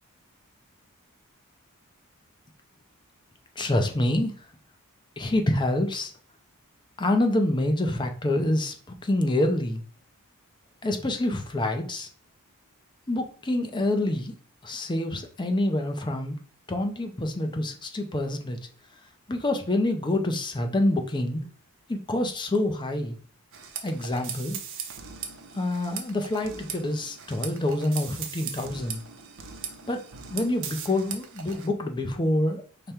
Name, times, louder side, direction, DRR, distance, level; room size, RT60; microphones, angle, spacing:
voice 1, 3.6-4.5 5.2-6.1 7.0-9.8 10.8-12.1 13.1-14.3 14.6-16.4 16.7-18.6 19.3-21.5 21.9-23.2 23.8-24.6 25.5-29.0 29.9-30.0 30.3-32.6, left 1 dB, 20° left, 5 dB, 0.5 m, -26 dB
sound 1, 23.5-31.7, right 7 dB, 60° right, 0.6 m, -39 dB
5.0 x 2.2 x 4.3 m, 0.43 s
head